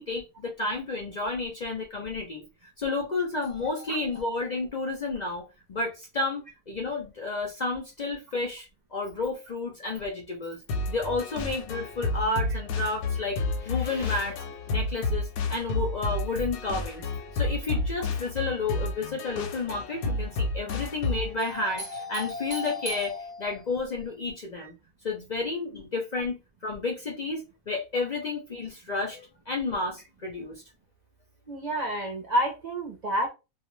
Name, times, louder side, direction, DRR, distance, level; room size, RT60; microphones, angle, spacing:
voice 1, 0.0-2.4 2.8-5.4 5.7-10.6 10.9-17.0 17.3-24.7 25.0-30.5, left 3 dB, 55° left, 0.5 m, -31 dB
sound 1, 10.7-21.4, left 3 dB, 85° left, 1.0 m, -31 dB
voice 2, 31.5-33.3, right 1 dB, 45° right, 0.5 m, -28 dB
2.3 x 2.3 x 3.0 m
omnidirectional pair, 1.4 m